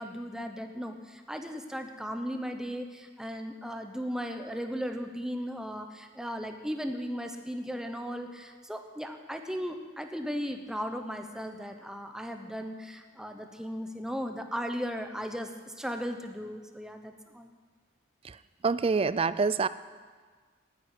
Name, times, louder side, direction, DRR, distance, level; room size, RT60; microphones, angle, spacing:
voice 1, 0.0-15.5 15.8-17.5, equal, 5° right, 5 dB, 0.9 m, -36 dB
voice 2, 18.6-19.7, right 4 dB, 30° right, 15 dB, 0.3 m, -26 dB
9.3 x 9.3 x 9.8 m, 1.5 s
head